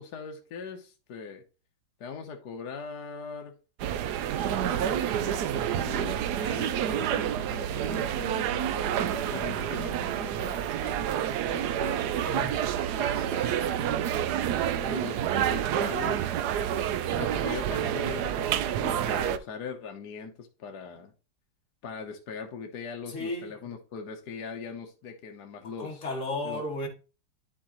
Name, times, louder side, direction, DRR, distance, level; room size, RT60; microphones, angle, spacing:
voice 1, 0.0-1.4 2.0-3.6 4.4-12.1 13.0-16.4 17.1-21.1 21.8-26.1 26.4-26.6, left 5 dB, 55° left, 1.4 m, -41 dB
sound 1, 3.8-19.4, right 10 dB, 75° right, 0.9 m, -28 dB
voice 2, 12.2-12.7 23.1-23.5 25.8-26.9, left 2 dB, 40° left, 1.7 m, -34 dB
11.0 x 4.7 x 3.0 m
omnidirectional pair, 2.4 m